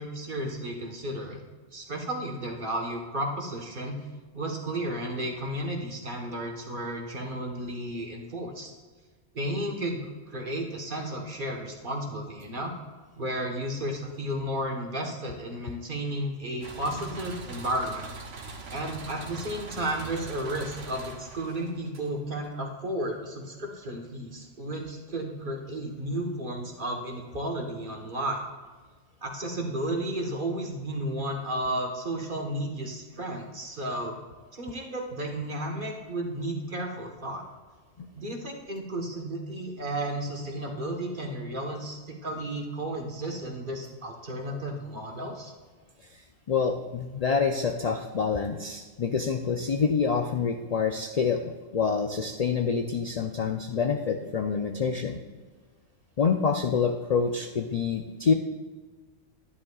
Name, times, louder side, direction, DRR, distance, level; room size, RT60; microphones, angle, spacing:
voice 1, 0.0-1.4 1.7-4.0 4.3-8.7 9.3-10.0 10.3-12.7 13.2-18.1 18.7-28.4 29.2-34.2 34.5-37.4 38.1-45.5, right 1 dB, 45° right, 0 dB, 1.4 m, -33 dB
sound 1, 16.6-22.5, right 3 dB, 85° right, 1.3 m, -42 dB
voice 2, 46.0-55.2 56.2-58.3, left 5 dB, 50° left, 5 dB, 0.4 m, -27 dB
12.5 x 10.5 x 2.4 m, 1.4 s
omnidirectional pair, 1.2 m